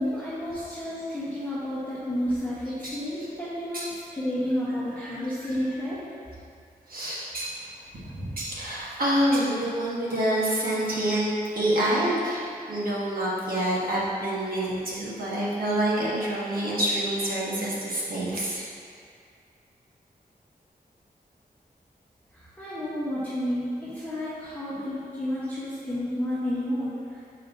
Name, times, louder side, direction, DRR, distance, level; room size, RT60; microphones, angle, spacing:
voice 1, 0.0-6.0 22.6-27.0, equal, 10° left, -11 dB, 1.1 m, -30 dB
voice 2, 2.8-3.2 3.7-3.8 5.0-5.8 6.9-7.5 8.1-18.6, right 1 dB, 65° right, -7 dB, 1.5 m, -27 dB
6.6 x 5.2 x 2.8 m, 2.3 s
wide cardioid pair, 90°, 16 cm